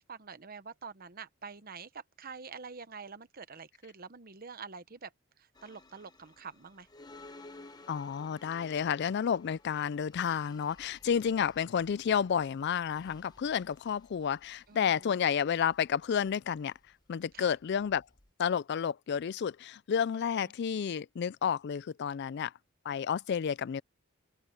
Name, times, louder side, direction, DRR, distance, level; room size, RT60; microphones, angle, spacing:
voice 1, 0.0-5.1 5.6-6.9 11.3-11.4 14.7-15.2 17.3-17.5 20.1-20.2, right 5 dB, 45° right, 1.0 m, -46 dB
sound 1, 5.6-18.3, left 2 dB, 20° left, 1.2 m, -56 dB
voice 2, 7.9-16.7 17.1-18.0 18.4-22.5 22.9-23.8, left 7 dB, 50° left, 0.3 m, -31 dB
open air
head